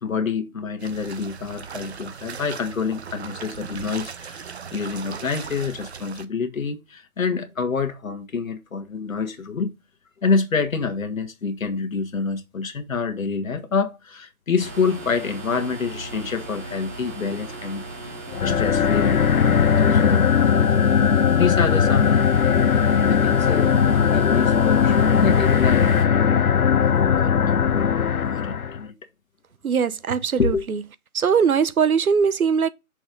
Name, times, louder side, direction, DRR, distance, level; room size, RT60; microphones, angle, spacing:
voice 1, 0.0-9.7 10.2-18.1 18.4-19.5 19.9-20.4 20.7-22.3 23.0-23.8 24.1-26.5 26.8-27.9 28.2-28.9 30.4-30.7, left 5 dB, 70° left, 1.7 m, -27 dB
sound 1, 0.8-6.3, right 6 dB, 50° right, 0.8 m, -37 dB
sound 2, 14.6-26.0, right 2 dB, 10° right, 1.1 m, -37 dB
sound 3, 18.3-28.8, left 7 dB, 85° left, 0.8 m, -19 dB
voice 2, 29.6-30.5 31.1-32.7, right 6 dB, 80° right, 0.9 m, -20 dB
6.3 x 4.4 x 5.2 m
figure-of-eight pair, 155°, 42 cm